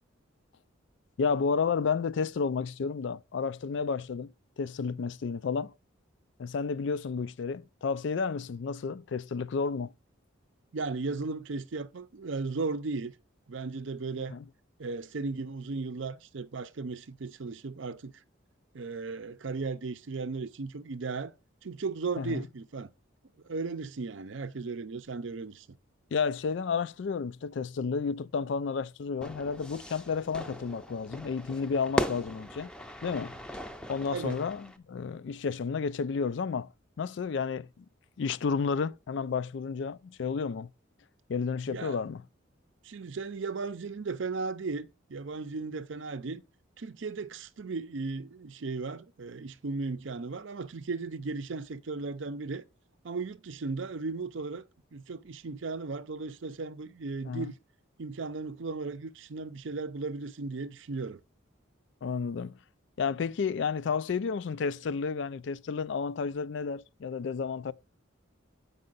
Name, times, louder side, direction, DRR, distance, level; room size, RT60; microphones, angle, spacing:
voice 1, 1.2-4.3 4.6-5.7 6.4-9.9 14.3-14.4 22.2-22.5 26.1-32.7 33.0-33.3 33.9-36.7 37.0-37.8 38.2-40.7 41.3-42.2 57.3-57.5 62.0-62.6 63.0-67.7, left 5 dB, 60° left, 0.4 m, -31 dB
voice 2, 10.7-13.1 13.5-14.4 14.8-18.1 18.7-21.3 21.6-22.9 23.4-25.7 34.1-34.4 41.7-42.0 42.8-46.4 46.8-52.6 53.0-54.6 54.9-57.6 58.0-61.2, right 4 dB, 70° right, 0.6 m, -36 dB
Fire / Fireworks, 29.2-34.8, left 1 dB, 5° left, 0.5 m, -37 dB
8.6 x 5.4 x 3.9 m
head